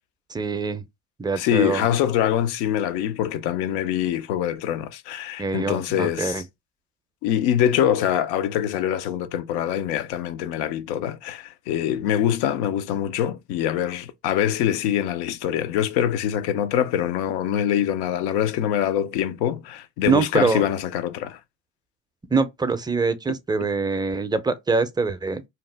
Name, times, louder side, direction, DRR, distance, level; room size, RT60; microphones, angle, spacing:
voice 1, 0.3-0.8 1.2-1.9 5.4-6.4 20.0-20.6 22.3-25.5, right 4 dB, 15° right, 0.5 m, -24 dB
voice 2, 1.4-6.4 7.2-21.4, left 10 dB, 75° left, 0.5 m, -24 dB
2.9 x 2.0 x 3.3 m
supercardioid pair, 75°, 30 cm